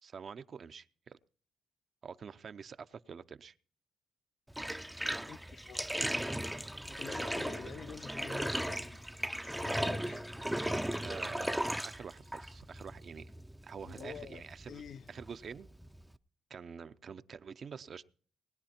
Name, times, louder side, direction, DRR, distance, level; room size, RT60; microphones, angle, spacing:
voice 1, 0.0-1.2 2.0-3.5 11.0-13.3 13.6-14.8 15.1-15.7 16.5-18.0, right 6 dB, 50° right, 0.7 m, -47 dB
Bathtub (filling or washing), 4.5-16.2, equal, 5° right, 0.5 m, -37 dB
voice 2, 5.3-5.8 7.0-10.2 13.8-15.1, left 7 dB, 60° left, 0.5 m, -48 dB
20.0 x 9.9 x 4.4 m
cardioid pair, 90°, 0 cm